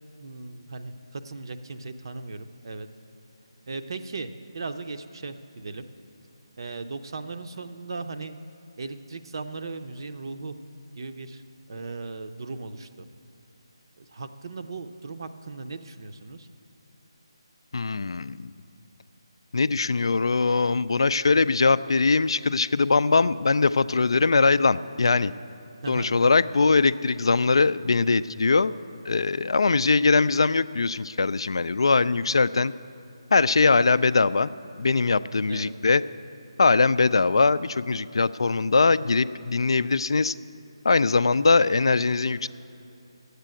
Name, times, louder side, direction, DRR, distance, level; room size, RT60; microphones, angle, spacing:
voice 1, 0.2-2.9 3.7-5.8 6.6-8.4 8.8-10.6 10.9-11.4 11.7-13.1 14.0-16.5 25.8-26.3 35.5-35.7, right 3 dB, 55° right, 9 dB, 0.6 m, -37 dB
voice 2, 17.7-18.5 19.5-25.3 25.9-28.7 29.0-32.7 33.3-34.5 34.8-36.0 36.6-40.3 40.8-42.5, left 4 dB, 70° left, 16 dB, 0.3 m, -21 dB
10.5 x 8.2 x 7.5 m, 2.9 s
figure-of-eight pair, 160°, 3 cm